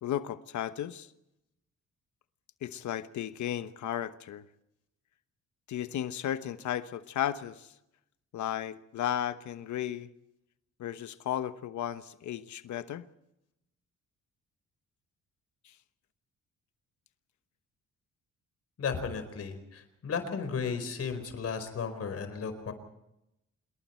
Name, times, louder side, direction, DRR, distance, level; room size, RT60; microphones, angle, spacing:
voice 1, 0.0-1.1 2.6-4.4 5.7-7.7 8.3-10.1 10.8-13.1 15.6-15.7, left 11 dB, 70° left, 1.1 m, -34 dB
voice 2, 18.8-22.7, left 6 dB, 50° left, 4.7 m, -34 dB
27.0 x 21.5 x 4.5 m
cardioid pair, 90°, 30 cm